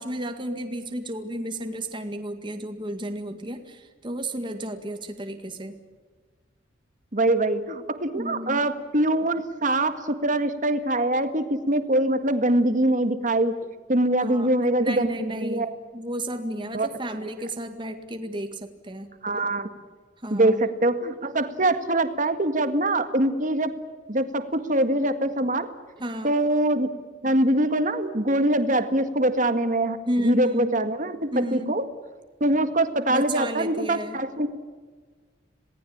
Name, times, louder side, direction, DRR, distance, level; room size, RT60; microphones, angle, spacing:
voice 1, 0.0-5.8 8.1-8.7 14.2-14.5 14.8-15.7 15.9-19.1 20.2-20.7 26.0-26.4 30.1-30.8 31.3-31.8 33.1-34.2, right 1 dB, 25° right, 6 dB, 2.0 m, -32 dB
voice 2, 7.1-13.6 13.9-15.7 16.7-16.9 19.2-19.7 20.3-23.7 24.1-25.7 26.2-26.9 27.2-30.0 30.2-31.8 32.4-34.5, right 1 dB, 40° right, 9 dB, 1.9 m, -23 dB
27.5 x 19.0 x 8.8 m, 1.4 s
head